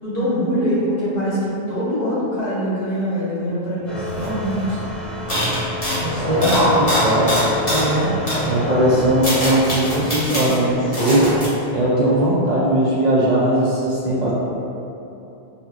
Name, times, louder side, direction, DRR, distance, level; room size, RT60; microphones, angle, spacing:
voice 1, 0.0-4.8 6.0-6.5 7.7-8.1 8.6-8.8, equal, 65° left, -12 dB, 1.7 m, -23 dB
sound 1, 3.9-10.2, left 1 dB, ahead, 0.3 m, -28 dB
sound 2, 4.2-4.3 4.5-4.8 5.3-7.9 8.3-8.5 8.9-10.6 10.9-11.5, equal, 35° left, 1.1 m, -23 dB
voice 2, 6.2-7.5 8.4-11.4 11.7-14.3, right 1 dB, 55° right, -7 dB, 0.5 m, -19 dB
4.7 x 2.9 x 2.3 m, 2.8 s
omnidirectional pair, 1.1 m